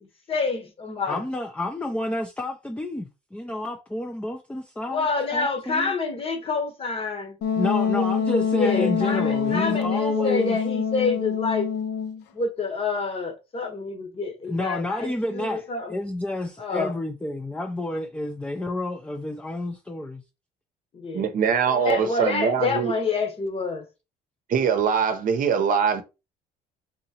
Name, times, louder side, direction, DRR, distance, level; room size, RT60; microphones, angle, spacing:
voice 1, 0.0-1.2 4.9-7.4 7.9-11.7 12.3-16.0 16.6-17.0 20.9-21.3 21.7-23.8, left 4 dB, 35° left, 1.0 m, -28 dB
voice 2, 1.0-5.1 5.3-5.9 7.6-10.6 14.5-20.2, left 1 dB, 5° left, 0.5 m, -30 dB
Wind instrument woodwind instrument, 7.4-12.2, left 6 dB, 80° left, 0.7 m, -25 dB
voice 3, 21.1-22.9 24.5-26.0, right 7 dB, 55° right, 0.7 m, -22 dB
3.7 x 2.8 x 2.8 m
cardioid pair, 110°, 17 cm